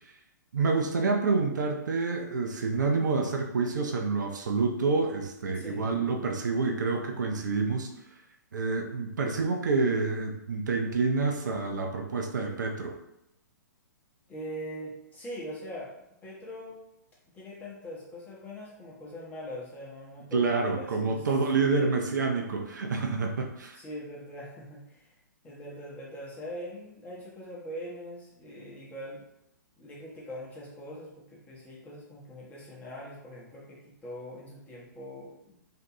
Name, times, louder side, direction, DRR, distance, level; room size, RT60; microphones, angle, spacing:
voice 1, 0.5-7.9 8.5-13.0 20.3-23.8, right 4 dB, 70° right, 3 dB, 0.4 m, -28 dB
voice 2, 5.5-5.9 14.3-15.9 16.2-16.8 17.3-21.3 21.6-22.0 23.7-25.2 25.4-29.2 29.8-35.6, equal, 15° left, -5 dB, 0.7 m, -42 dB
2.5 x 2.1 x 2.7 m, 0.83 s
figure-of-eight pair, 115°, 10 cm